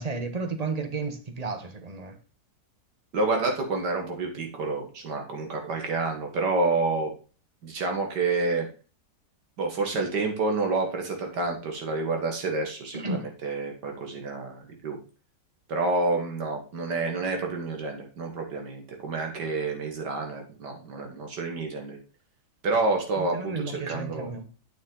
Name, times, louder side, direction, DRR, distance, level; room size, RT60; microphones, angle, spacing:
voice 1, 0.0-2.2 12.9-13.3 23.2-24.5, right 3 dB, 30° right, 0.8 m, -33 dB
voice 2, 3.1-7.1 7.6-8.7 9.6-13.2 13.4-15.0 15.7-22.0 22.6-24.3, right 3 dB, 70° right, 2.0 m, -28 dB
8.9 x 6.2 x 3.8 m
omnidirectional pair, 1.9 m